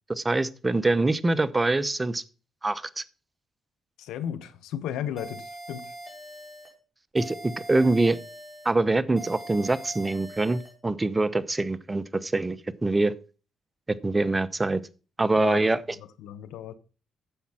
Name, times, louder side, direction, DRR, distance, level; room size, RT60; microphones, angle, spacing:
voice 1, 0.1-2.2 2.6-3.0 7.1-8.2 8.6-12.6 12.8-13.1 14.0-14.8 15.2-15.8, right 2 dB, 20° right, 0.8 m, -24 dB
voice 2, 4.0-5.9 15.4-15.7 16.2-16.7, left 10 dB, 90° left, 1.1 m, -34 dB
sound 1, 5.2-6.7 7.2-8.7 9.2-10.7, right 1 dB, 5° left, 4.5 m, -42 dB
10.0 x 7.3 x 5.7 m
cardioid pair, 90°, 0 cm